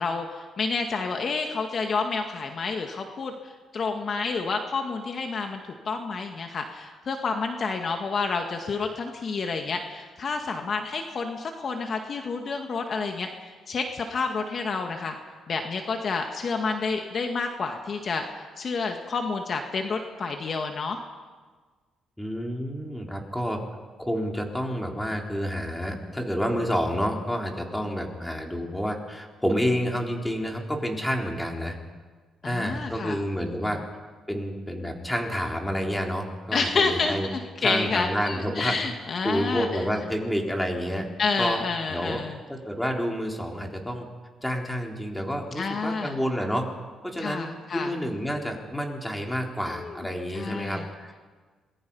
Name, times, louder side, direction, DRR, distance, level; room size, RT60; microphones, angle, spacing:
voice 1, 0.0-5.6 5.9-15.2 15.5-21.0 32.4-33.2 33.6-33.8 36.5-39.7 41.2-42.4 45.6-46.2 47.2-47.9 49.7-50.1 50.3-50.9, left 4 dB, 50° left, 4 dB, 1.9 m, -29 dB
voice 2, 22.2-23.6 24.0-31.8 32.4-33.8 34.3-37.3 37.6-38.7 39.2-41.1 41.4-41.6 41.9-42.2 42.5-44.1 44.4-46.7 47.0-47.5 47.7-51.2, equal, 5° left, 1 dB, 4.0 m, -29 dB
27.5 x 21.0 x 5.6 m, 1.4 s
cardioid pair, 90°, 0 cm